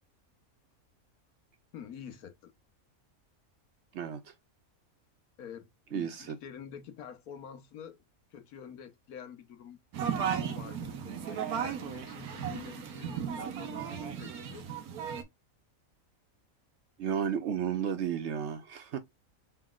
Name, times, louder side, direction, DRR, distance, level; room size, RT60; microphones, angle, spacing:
voice 1, 1.7-2.5 5.4-8.0 8.3-9.8 10.5-14.7, left 8 dB, 80° left, 1.4 m, -47 dB
voice 2, 3.9-4.3 5.9-6.4 17.0-19.0, right 8 dB, 65° right, 0.8 m, -33 dB
sound 1, 9.9-15.2, right 8 dB, 85° right, 1.4 m, -35 dB
4.1 x 3.9 x 2.3 m
omnidirectional pair, 1.5 m